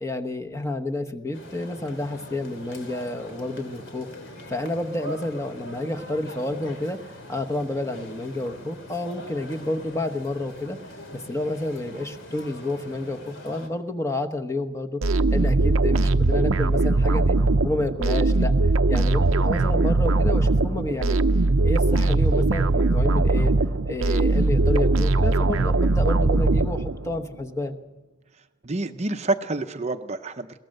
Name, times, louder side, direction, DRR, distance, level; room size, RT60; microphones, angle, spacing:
voice 1, 0.0-4.1 4.5-10.8 11.1-17.4 17.6-18.5 18.9-21.2 21.6-23.5 23.8-27.8, left 2 dB, 15° left, 6 dB, 1.1 m, -30 dB
sound 1, 1.3-13.7, left 1 dB, 65° left, 3.4 m, -42 dB
sound 2, 15.0-27.2, right 2 dB, 90° right, 0.7 m, -20 dB
voice 2, 28.6-30.6, right 2 dB, 35° right, 8 dB, 0.7 m, -28 dB
22.0 x 18.0 x 6.6 m, 1.1 s
head